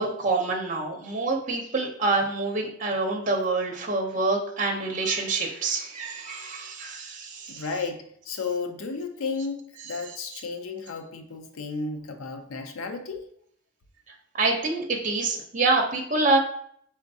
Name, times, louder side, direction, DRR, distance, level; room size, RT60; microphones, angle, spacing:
voice 1, 0.0-7.6 14.4-16.4, right 3 dB, 35° right, 1 dB, 0.7 m, -26 dB
voice 2, 7.5-13.3, left 4 dB, 80° left, 6 dB, 0.5 m, -33 dB
4.4 x 3.6 x 2.7 m, 0.65 s
head